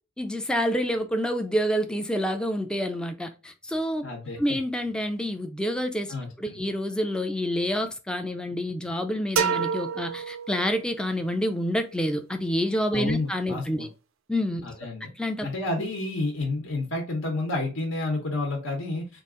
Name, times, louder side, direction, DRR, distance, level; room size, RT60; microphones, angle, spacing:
voice 1, 0.2-4.0 4.4-13.9 14.3-14.6 15.2-15.5, equal, 5° left, 0.4 m, -28 dB
voice 2, 4.0-4.4 6.1-6.6 12.9-13.9 14.6-15.1 15.4-19.1, left 2 dB, 70° left, 1.0 m, -30 dB
sound 1, 9.4-11.1, right 6 dB, 80° right, 0.5 m, -28 dB
3.8 x 2.4 x 3.7 m
head